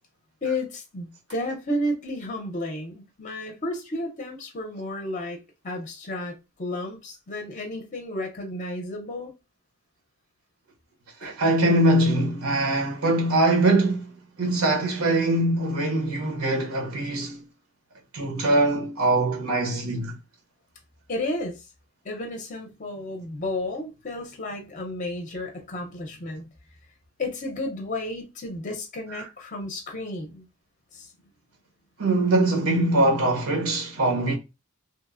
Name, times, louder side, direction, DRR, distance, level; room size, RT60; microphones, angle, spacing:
voice 1, 0.4-5.4 5.6-9.3 11.2-11.3 21.1-21.7 22.0-26.4 27.2-30.5 30.9-31.1, left 1 dB, 35° left, 0.6 m, -32 dB
voice 2, 11.2-14.1 14.4-17.4 18.1-20.2 32.0-34.4, right 2 dB, 70° right, 0.7 m, -22 dB
2.9 x 2.0 x 2.3 m
head